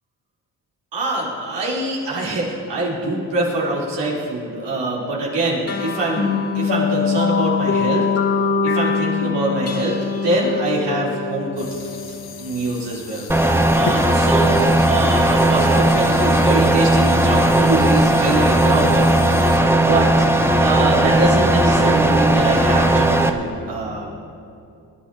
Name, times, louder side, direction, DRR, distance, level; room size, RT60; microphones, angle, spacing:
voice 1, 0.9-8.0 8.6-10.0 10.2-13.3 13.7-14.6 14.9-20.3 20.6-24.1, right 2 dB, 75° right, -5 dB, 4.2 m, -24 dB
sound 1, 5.7-12.5, left 5 dB, 35° left, 2.0 m, -23 dB
sound 2, 11.6-19.6, left 6 dB, 60° left, 1.3 m, -36 dB
sound 3, 13.3-23.3, right 1 dB, 5° right, 1.2 m, -16 dB
24.0 x 10.5 x 4.3 m, 2.6 s
cardioid pair, 60°, 42 cm